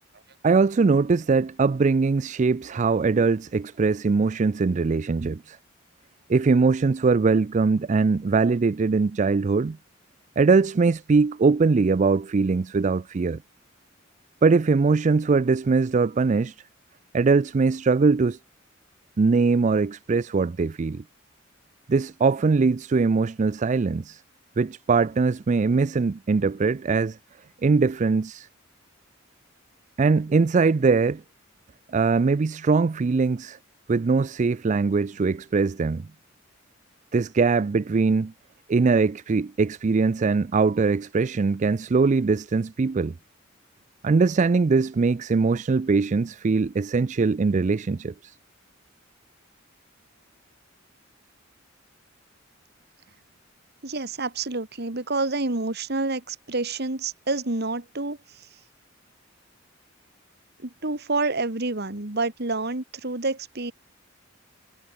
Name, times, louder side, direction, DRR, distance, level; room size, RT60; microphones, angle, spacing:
voice 1, 0.4-5.6 6.3-9.8 10.4-13.4 14.4-16.6 17.1-18.4 19.2-21.0 21.9-24.2 24.6-27.2 27.6-28.5 30.0-31.2 31.9-33.6 33.9-36.1 37.1-38.3 38.7-43.1 44.0-48.3, right 4 dB, 40° right, 0.4 m, -21 dB
voice 2, 53.8-58.6 60.6-63.7, right 3 dB, 55° right, 2.1 m, -28 dB
head